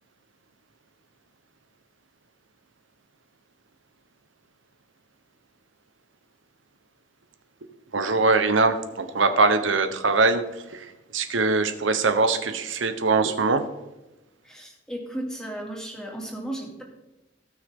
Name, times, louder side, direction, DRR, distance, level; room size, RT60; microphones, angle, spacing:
voice 1, 7.9-10.4 10.7-13.6, right 3 dB, 85° right, 9 dB, 1.1 m, -22 dB
voice 2, 14.4-16.8, right 1 dB, 5° left, -1 dB, 2.6 m, -35 dB
18.0 x 6.3 x 3.8 m, 0.99 s
head